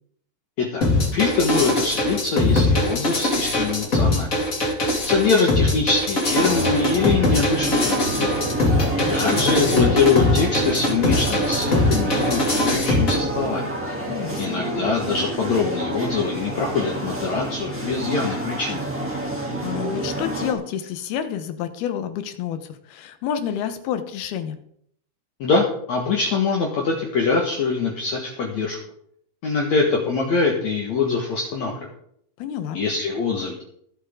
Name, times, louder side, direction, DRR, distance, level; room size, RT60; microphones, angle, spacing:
sound 1, 0.8-13.2, left 2 dB, 25° left, 2.3 m, -21 dB
voice 1, 1.1-4.3 5.1-7.9 8.2-8.4 9.1-13.7 14.4-18.8 25.4-28.8 29.4-31.9 32.7-33.6, left 4 dB, 55° left, 0 dB, 2.3 m, -23 dB
sound 2, 6.3-20.5, right 1 dB, 5° right, 2.1 m, -28 dB
sound 3, 8.0-13.5, right 5 dB, 70° right, 2.1 m, -33 dB
voice 2, 9.0-9.7 14.1-14.6 19.6-24.6 32.4-32.8, left 9 dB, 75° left, 9 dB, 2.9 m, -29 dB
22.5 x 8.0 x 3.8 m, 0.67 s
omnidirectional pair, 4.7 m